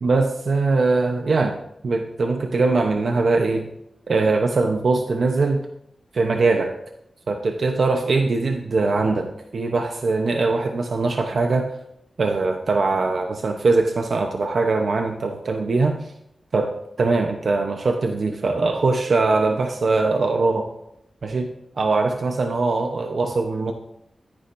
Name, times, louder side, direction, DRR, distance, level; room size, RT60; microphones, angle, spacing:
voice 1, 0.0-1.6 1.8-3.7 4.1-5.7 6.1-6.7 7.3-11.7 12.2-16.0 16.5-16.7 17.0-20.7 21.2-21.5 21.8-23.7, right 3 dB, 70° right, 4 dB, 0.9 m, -21 dB
13.5 x 9.8 x 2.7 m, 0.79 s
cardioid pair, 65°, 0 cm